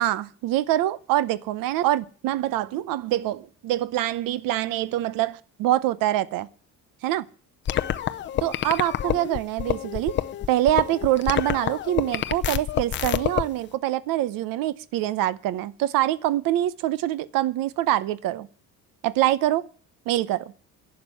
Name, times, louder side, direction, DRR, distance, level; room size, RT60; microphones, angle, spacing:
voice 1, 0.0-6.5 7.0-7.2 8.4-10.1 10.5-18.5 19.0-19.6 20.1-20.5, right 14 dB, 70° right, 0.8 m, -25 dB
sound 1, 7.7-13.4, left 11 dB, 35° left, 0.6 m, -27 dB
11.5 x 7.5 x 9.4 m
cardioid pair, 175°, 34 cm